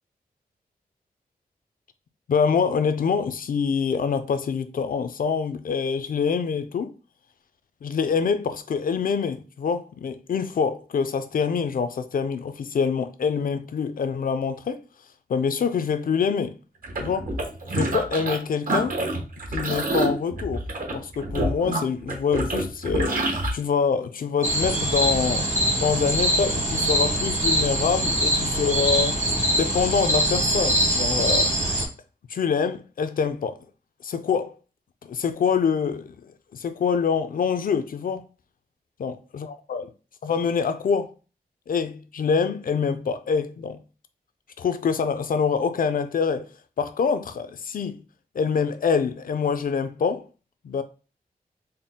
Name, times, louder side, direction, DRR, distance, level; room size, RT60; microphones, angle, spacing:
voice 1, 2.3-6.9 7.8-14.8 15.3-16.6 17.0-17.3 17.7-19.0 19.5-20.6 20.9-29.2 29.6-31.5 32.3-33.6 34.0-34.5 35.0-38.3 39.0-39.9 40.2-41.1 41.7-43.8 44.6-46.5 46.8-48.0 48.3-50.2 50.6-50.8, left 6 dB, 65° left, 0.4 m, -25 dB
sound 1, 16.8-18.4 18.7-23.5, right 1 dB, 60° right, 1.0 m, -27 dB
sound 2, 24.4-31.8, right 1 dB, 45° right, 1.1 m, -23 dB
4.1 x 2.1 x 3.6 m
wide cardioid pair, 100°, 16 cm